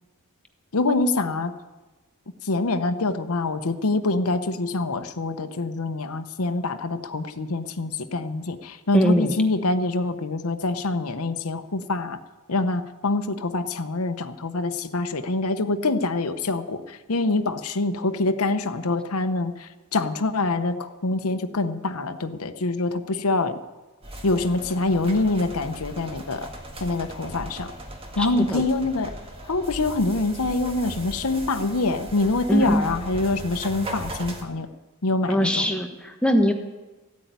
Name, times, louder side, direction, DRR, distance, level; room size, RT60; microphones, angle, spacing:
voice 1, 0.7-1.5 2.4-12.2 12.5-23.6 24.2-26.5 26.8-27.7 28.2-29.1 29.5-34.7 35.0-35.7, left 2 dB, 80° left, 8 dB, 0.9 m, -25 dB
voice 2, 8.9-9.3 28.2-28.6 32.5-32.9 35.3-36.5, equal, 5° left, 4 dB, 1.2 m, -21 dB
sound 1, 24.0-34.4, right 1 dB, 25° right, 1.7 m, -38 dB
15.0 x 8.5 x 9.4 m, 1.2 s
head